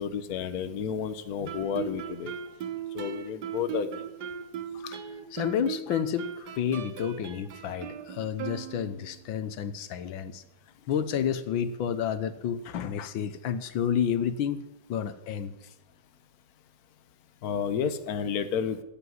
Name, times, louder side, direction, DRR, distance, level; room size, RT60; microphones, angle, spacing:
voice 1, 0.0-2.3 2.9-4.0 17.4-18.8, left 7 dB, 55° left, 10 dB, 1.4 m, -31 dB
Guitar, 1.5-9.2, right 8 dB, 65° right, 1.5 m, -38 dB
voice 2, 5.3-10.4 10.9-14.6 14.9-15.5, left 8 dB, 85° left, 12 dB, 1.7 m, -30 dB
14.5 x 8.9 x 9.6 m, 0.90 s
omnidirectional pair, 2.1 m